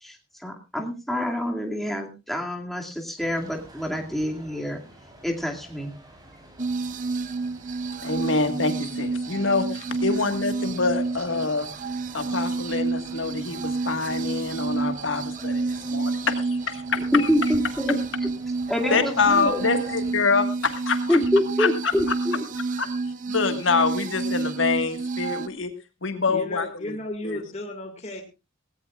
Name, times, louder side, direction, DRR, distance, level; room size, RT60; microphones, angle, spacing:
voice 1, 0.0-4.8 5.2-5.9 17.1-18.3 18.7-19.7 21.1-22.4, left 1 dB, ahead, 1 dB, 2.3 m, -26 dB
sound 1, 3.2-20.1, right 1 dB, 20° right, 3.8 m, -50 dB
sound 2, 6.6-25.5, right 3 dB, 40° right, 0.7 m, -29 dB
voice 2, 8.0-11.7 12.1-17.3 18.9-21.2 21.6-21.7 22.1-22.2 22.8-22.9 23.3-25.7 26.0-27.0 27.2-27.4, left 4 dB, 70° left, 7 dB, 1.7 m, -26 dB
voice 3, 26.3-28.2, left 2 dB, 35° left, 3 dB, 2.1 m, -34 dB
18.0 x 17.0 x 2.4 m, 0.28 s
head